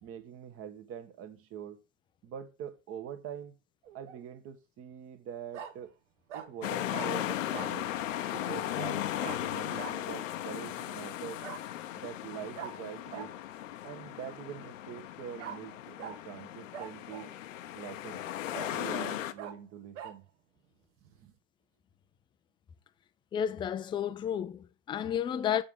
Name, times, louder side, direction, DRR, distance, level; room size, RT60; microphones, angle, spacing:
voice 1, 0.0-1.8 2.2-3.6 3.9-5.9 6.3-7.9 8.3-11.4 12.0-13.4 13.8-17.3 17.7-18.2 18.5-20.2 21.0-21.3, right 9 dB, 35° right, 1.3 m, -44 dB
Bark, 3.8-4.2 5.5-5.7 6.3-6.5 6.9-7.1 7.5-7.8 9.2-9.4 9.8-9.9 11.4-11.6 12.6-12.7 13.1-13.3 15.4-15.6 16.0-16.2 16.7-17.4 17.9-18.0 18.5-18.7 19.4-19.5 19.9-20.1, right 8 dB, 65° right, 1.3 m, -42 dB
sound 1, 6.6-19.3, left 12 dB, 80° left, 1.0 m, -37 dB
voice 2, 23.3-25.6, left 9 dB, 15° left, 0.4 m, -32 dB
7.0 x 6.9 x 3.7 m
hypercardioid pair, 120°, 38 cm